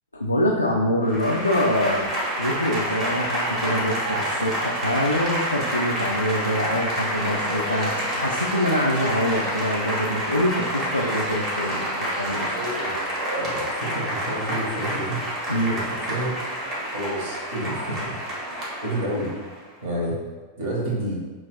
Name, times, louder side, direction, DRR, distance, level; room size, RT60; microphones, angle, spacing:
voice 1, 0.1-2.1 2.4-12.5 15.5-15.8, left 1 dB, 85° left, -2 dB, 0.3 m, -25 dB
Applause / Crowd, 1.0-19.6, equal, 30° right, 1.0 m, -28 dB
voice 2, 12.3-15.2 15.7-16.4 16.9-18.2 18.5-18.6 18.8-19.3 19.8-20.2 20.6-21.2, right 1 dB, 55° right, -4 dB, 1.1 m, -29 dB
5.5 x 2.4 x 2.3 m, 1.3 s
figure-of-eight pair, 90°, 0 cm